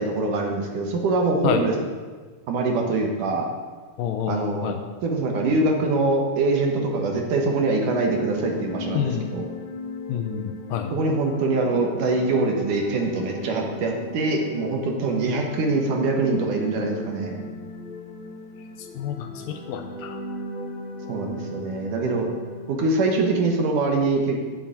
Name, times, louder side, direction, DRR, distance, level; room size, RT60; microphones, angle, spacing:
voice 1, 0.0-1.7 2.5-3.5 4.3-4.7 5.0-9.5 10.9-17.4 21.1-22.3 22.7-24.4, right 3 dB, 65° right, 2 dB, 2.7 m, -24 dB
voice 2, 4.0-4.8 8.9-9.3 10.1-10.9 18.8-20.2, left 9 dB, 75° left, 6 dB, 2.3 m, -28 dB
sound 1, 7.4-23.1, left 1 dB, 40° left, 2.3 m, -36 dB
11.0 x 7.1 x 8.9 m, 1.4 s
omnidirectional pair, 4.4 m